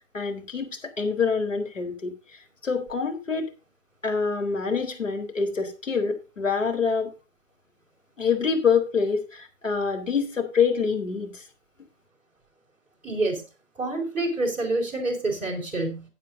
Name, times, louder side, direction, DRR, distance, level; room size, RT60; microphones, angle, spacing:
voice 1, 0.0-2.1 2.6-3.5 4.0-7.1 8.2-11.4, left 5 dB, 75° left, 5 dB, 4.0 m, -26 dB
voice 2, 13.0-13.4 13.8-16.0, right 2 dB, 5° right, -5 dB, 4.2 m, -27 dB
16.5 x 9.0 x 2.7 m, 0.30 s
figure-of-eight pair, 140°, 38 cm